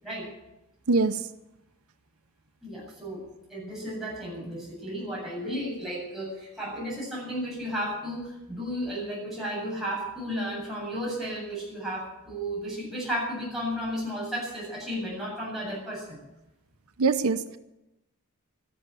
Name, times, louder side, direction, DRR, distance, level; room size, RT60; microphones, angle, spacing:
voice 1, 2.6-3.2 3.5-16.2, equal, ahead, -6 dB, 7.9 m, -33 dB
voice 2, 17.0-17.6, right 4 dB, 85° right, 11 dB, 0.7 m, -23 dB
13.0 x 12.0 x 9.0 m, 0.94 s
head